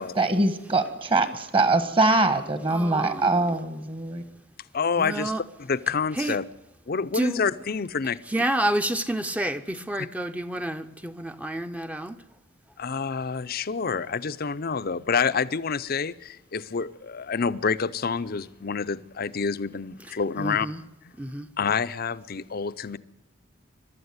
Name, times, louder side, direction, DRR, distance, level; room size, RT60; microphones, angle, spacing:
voice 1, 0.1-4.2, right 2 dB, 25° right, 1.5 m, -23 dB
voice 2, 2.7-3.3 5.0-5.4 6.2-6.4 7.1-7.4 8.3-12.2 20.4-20.8 21.2-21.5, right 1 dB, 5° right, 0.7 m, -29 dB
voice 3, 4.7-5.3 5.6-6.4 6.9-8.2 12.8-20.7 21.6-23.0, left 5 dB, 50° left, 0.6 m, -28 dB
22.5 x 12.5 x 9.6 m
head